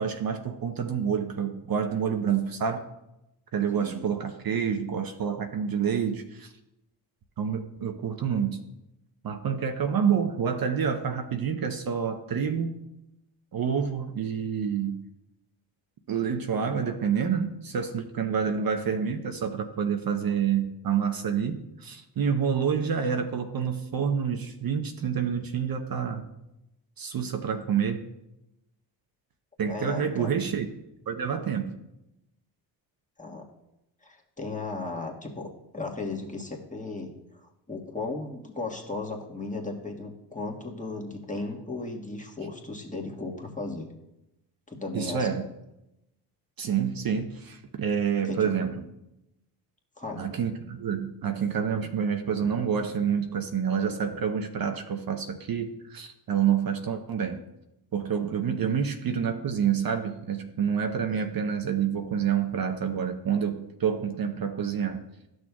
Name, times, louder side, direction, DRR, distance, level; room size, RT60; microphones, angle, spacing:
voice 1, 0.0-2.8 3.5-6.5 7.4-8.6 9.2-12.8 13.5-15.0 16.1-26.3 27.0-28.0 29.6-30.7 31.1-31.7 44.9-45.5 46.6-48.7 50.2-57.4 57.9-65.0, right 7 dB, 50° right, 5 dB, 0.9 m, -28 dB
voice 2, 3.7-4.1 18.6-18.7 29.6-30.4 33.2-33.5 34.0-43.9 44.7-45.4 48.2-48.5 50.0-50.2, left 3 dB, 15° left, 0 dB, 1.6 m, -36 dB
12.0 x 6.3 x 2.4 m, 0.89 s
supercardioid pair, 60°, 47 cm